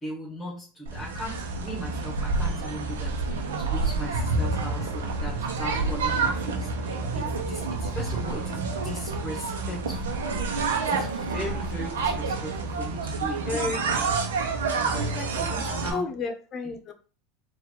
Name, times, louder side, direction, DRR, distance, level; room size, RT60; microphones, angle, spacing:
voice 1, 0.0-10.2 10.8-14.1 14.4-16.1 16.6-16.7, equal, 20° left, -4 dB, 1.8 m, -38 dB
sound 1, 0.9-15.9, right 4 dB, 85° right, 0.9 m, -28 dB
voice 2, 13.5-14.0 14.9-15.3 15.9-16.9, left 3 dB, 40° left, 6 dB, 0.9 m, -32 dB
4.4 x 2.7 x 3.8 m, 0.37 s
hypercardioid pair, 95°, 0 cm